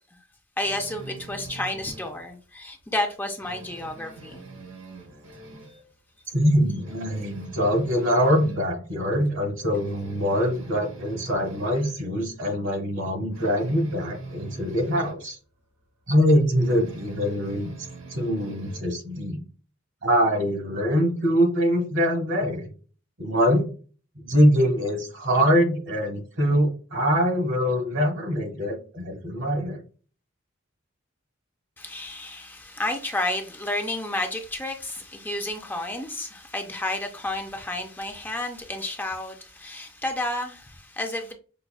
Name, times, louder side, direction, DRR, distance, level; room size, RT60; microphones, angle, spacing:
voice 1, 0.6-4.4 31.8-41.3, left 1 dB, 10° left, 0.4 m, -31 dB
sound 1, 0.6-2.2 2.6-2.8 3.1-5.9 6.3-6.4 6.7-8.6 9.1-9.2 9.6-12.0 13.3-15.2 16.5-18.9, right 2 dB, 85° right, 1.0 m, -44 dB
voice 2, 6.3-15.4 16.1-17.7 18.1-19.4 20.0-22.7 23.2-23.7 24.2-29.8, equal, 65° right, 1.3 m, -23 dB
5.5 x 2.2 x 2.2 m
head